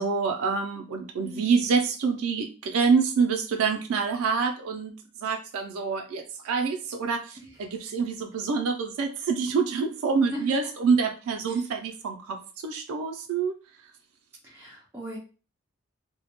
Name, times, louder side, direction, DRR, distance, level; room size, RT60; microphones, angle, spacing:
voice 1, 0.0-4.9 5.2-13.6, right 5 dB, 85° right, 3 dB, 0.3 m, -26 dB
voice 2, 1.2-1.6 7.4-7.5 10.3-10.4 14.4-15.2, equal, 10° right, -7 dB, 0.4 m, -38 dB
2.1 x 2.0 x 2.9 m, 0.36 s
head